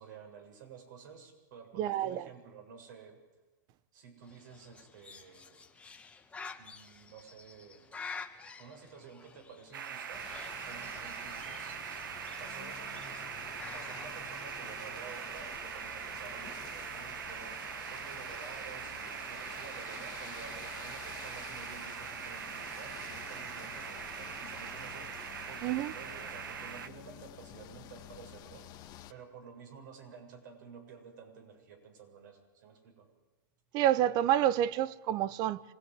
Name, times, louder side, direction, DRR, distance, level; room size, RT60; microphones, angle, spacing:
voice 1, 0.0-3.2 3.9-5.6 6.6-8.0 8.6-10.2 10.7-17.6 17.9-25.1 25.5-28.7 29.1-33.1, right 6 dB, 70° right, 7.7 m, -52 dB
voice 2, 1.8-2.3 25.6-25.9 33.7-35.6, right 12 dB, 40° right, 0.9 m, -28 dB
Bird, 4.2-14.1, left 5 dB, 10° left, 1.8 m, -49 dB
sound 1, 9.7-26.9, right 8 dB, 85° right, 1.5 m, -42 dB
sound 2, 10.1-29.1, left 12 dB, 40° left, 1.7 m, -50 dB
26.0 x 19.5 x 9.8 m
hypercardioid pair, 130°, 11 cm